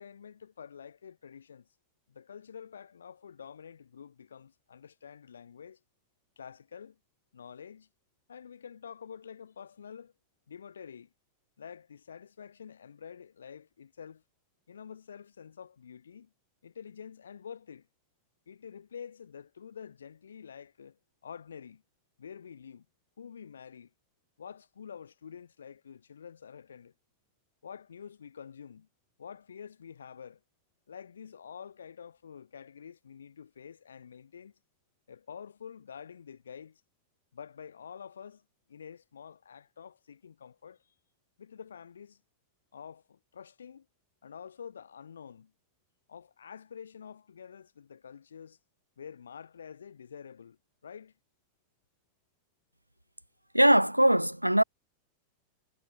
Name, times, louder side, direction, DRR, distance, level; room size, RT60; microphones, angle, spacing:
voice 1, 0.0-1.7 2.1-5.8 6.4-7.0 7.3-7.9 8.3-10.1 10.5-11.1 11.6-14.2 14.7-16.3 16.6-17.9 18.5-21.8 22.2-22.9 23.2-23.9 24.4-26.9 27.6-28.9 29.2-30.4 30.9-34.5 35.1-36.8 37.3-40.8 41.4-42.2 42.7-43.9 44.2-45.5 46.1-48.6 49.0-50.6 50.8-51.1, left 7 dB, 70° left, 7.0 m, -48 dB
voice 2, 53.5-54.6, right 1 dB, 90° right, 0.6 m, -21 dB
figure-of-eight pair, 90°, 0 cm